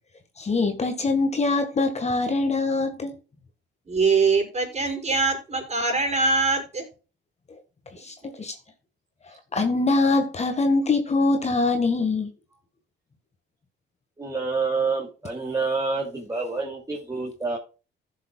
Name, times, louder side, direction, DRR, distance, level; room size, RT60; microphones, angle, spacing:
voice 1, 0.4-3.1 7.9-8.5 9.5-12.3, left 3 dB, 35° left, 1.7 m, -23 dB
voice 2, 3.9-6.9, right 4 dB, 35° right, 5.5 m, -23 dB
voice 3, 14.2-17.6, right 4 dB, 15° right, 2.9 m, -27 dB
15.5 x 6.9 x 2.4 m
cardioid pair, 90°, 20 cm